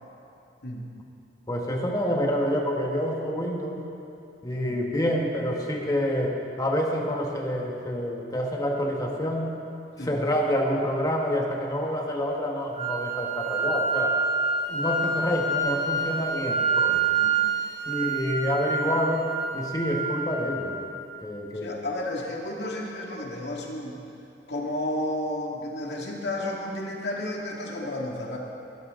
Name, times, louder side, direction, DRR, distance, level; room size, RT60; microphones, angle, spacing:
voice 1, 1.5-3.8 4.4-9.5 10.0-14.2 14.7-17.1 17.9-20.7 21.2-21.8, equal, 20° left, 0 dB, 1.7 m, -27 dB
sound 1, 12.8-20.8, right 4 dB, 45° right, 3.6 m, -27 dB
voice 2, 21.5-24.0 24.5-28.4, left 1 dB, 70° left, -2 dB, 2.4 m, -32 dB
21.5 x 12.5 x 3.9 m, 2.7 s
head